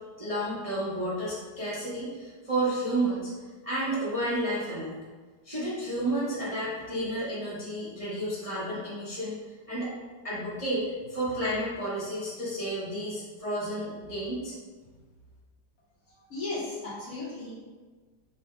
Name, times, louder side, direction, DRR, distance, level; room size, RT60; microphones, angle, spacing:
voice 1, 0.2-3.3 3.6-4.9 5.4-9.4 9.7-9.9 10.2-14.6, right 1 dB, 30° right, -10 dB, 0.7 m, -31 dB
voice 2, 16.0-17.5, left 2 dB, 55° left, -7 dB, 1.3 m, -36 dB
4.9 x 2.2 x 3.6 m, 1.4 s
omnidirectional pair, 2.0 m